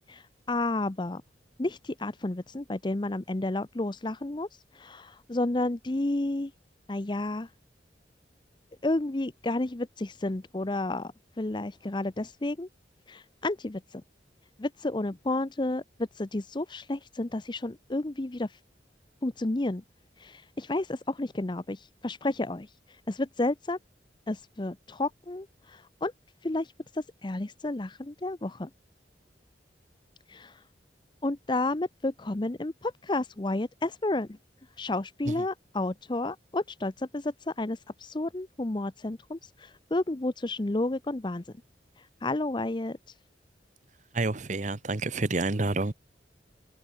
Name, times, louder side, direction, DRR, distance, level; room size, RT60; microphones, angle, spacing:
voice 1, 0.1-1.2 1.6-4.5 4.7-6.5 6.9-7.5 8.8-11.1 11.4-12.7 13.1-14.0 14.6-15.8 16.2-18.6 19.2-19.8 20.2-22.7 23.1-23.8 24.3-26.1 26.4-28.7 30.3-30.6 31.2-34.3 34.8-41.4 42.2-43.0, left 2 dB, 25° left, 0.7 m, -31 dB
voice 2, 44.1-45.9, right 2 dB, 45° right, 1.0 m, -29 dB
head